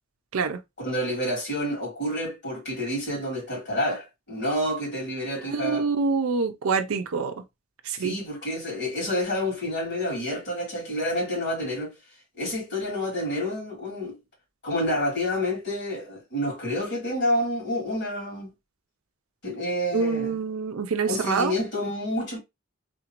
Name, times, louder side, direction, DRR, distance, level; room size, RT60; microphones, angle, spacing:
voice 1, 0.8-5.9 7.9-11.9 12.4-14.2 14.6-18.5 19.4-20.4 21.1-22.4, left 1 dB, 55° left, 2.4 m, -29 dB
voice 2, 5.5-7.4 7.8-8.2 19.9-21.5, right 4 dB, 90° right, 0.5 m, -26 dB
3.6 x 2.5 x 2.9 m
head